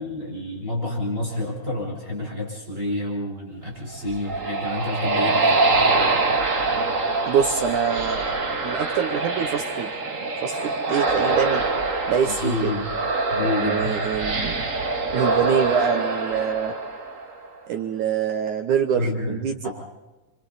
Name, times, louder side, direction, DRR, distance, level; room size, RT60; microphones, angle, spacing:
voice 1, 0.0-5.8 12.2-12.9 13.3-14.1 18.9-19.4 19.6-19.7, left 2 dB, 15° right, -3 dB, 6.2 m, -29 dB
sound 1, 3.9-17.5, right 3 dB, 40° right, 1.1 m, -24 dB
voice 2, 7.3-9.9 10.4-11.7 12.1-12.7 13.4-14.6 15.1-16.7 17.7-19.7, right 7 dB, 70° right, 5 dB, 2.1 m, -25 dB
30.0 x 26.0 x 4.1 m, 1.1 s
omnidirectional pair, 4.6 m